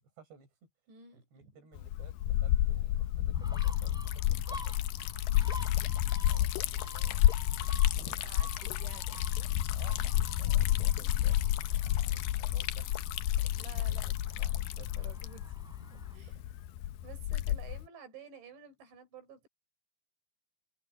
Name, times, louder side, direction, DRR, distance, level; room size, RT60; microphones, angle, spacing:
voice 1, 0.0-0.7 1.1-4.8 6.2-7.3 9.7-11.4 11.7-13.1 13.4-14.1 14.8-14.9 15.9-16.0 16.3-16.4, right 7 dB, 70° right, 7.7 m, -57 dB
voice 2, 0.9-1.6 5.2-5.6 8.0-9.3 10.6-10.7 10.9-11.3 13.6-16.4 17.0-19.5, right 6 dB, 85° right, 7.6 m, -53 dB
Liquid, 1.8-17.9, left 13 dB, 80° left, 2.0 m, -30 dB
Gull seagull, 3.3-16.2, equal, ahead, 6.1 m, -49 dB
omnidirectional pair, 5.1 m